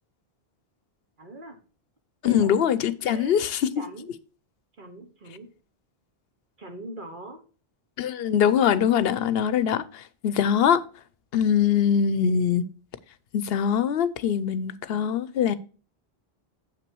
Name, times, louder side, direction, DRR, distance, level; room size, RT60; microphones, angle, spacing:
voice 1, 1.2-1.6 2.2-2.5 3.0-3.3 3.8-4.1 4.8-5.5 6.6-7.4, right 1 dB, 55° right, 1.5 m, -41 dB
voice 2, 2.2-3.7 8.0-10.8 11.3-12.6 13.3-15.6, left 8 dB, 75° left, 0.9 m, -23 dB
7.4 x 6.0 x 4.6 m
omnidirectional pair, 1.0 m